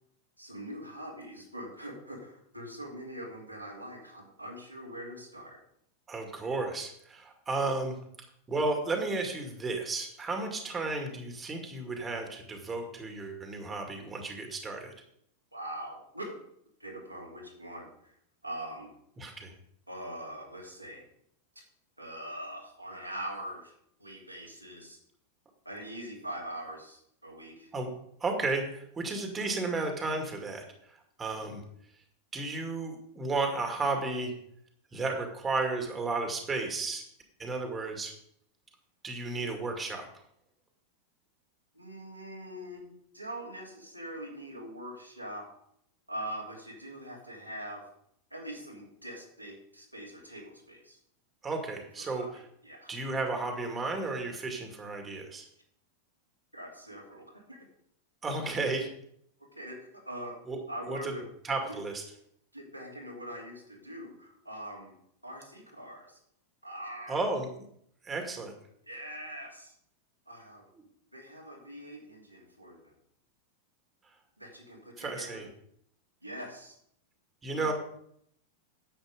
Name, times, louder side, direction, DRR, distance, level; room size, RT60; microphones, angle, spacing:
voice 1, 0.4-5.6 15.5-16.3 16.8-18.1 18.4-18.9 19.9-21.0 22.0-23.7 24.0-25.0 25.6-27.7 41.7-45.4 46.1-47.8 48.3-51.0 52.0-52.9 56.5-57.6 59.4-60.4 60.7-61.2 62.5-64.9 65.2-66.2 66.6-67.3 68.8-69.7 70.3-70.6 71.1-72.9 74.4-75.4 76.2-76.8 77.6-77.7, right 1 dB, 90° right, -2 dB, 2.9 m, -43 dB
voice 2, 6.1-8.0 8.5-14.9 19.2-19.5 27.7-27.9 28.2-31.6 32.3-34.3 34.9-37.0 37.4-38.1 39.0-40.1 51.4-52.3 52.9-55.5 58.2-58.9 60.5-60.6 60.9-61.1 61.4-62.0 67.1-67.7 68.0-68.5 75.0-75.5 77.4-77.7, right 3 dB, 15° right, 3 dB, 2.2 m, -33 dB
10.5 x 8.0 x 5.1 m, 0.70 s
figure-of-eight pair, 90°, 0 cm